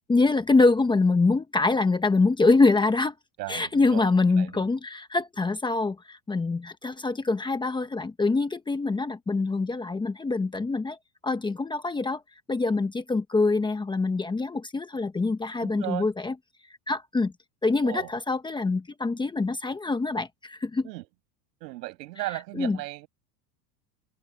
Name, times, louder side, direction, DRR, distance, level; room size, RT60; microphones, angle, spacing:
voice 1, 0.1-3.1 3.5-11.0 11.2-12.2 12.5-16.3 16.9-17.3 17.6-20.9 22.6-22.8, left 3 dB, 10° left, 1.1 m, -24 dB
voice 2, 3.4-4.0 4.3-4.7 15.6-16.1 17.8-18.1 20.8-21.0 21.6-23.1, right 19 dB, 90° right, 7.2 m, -36 dB
supercardioid pair, 150°, 48 cm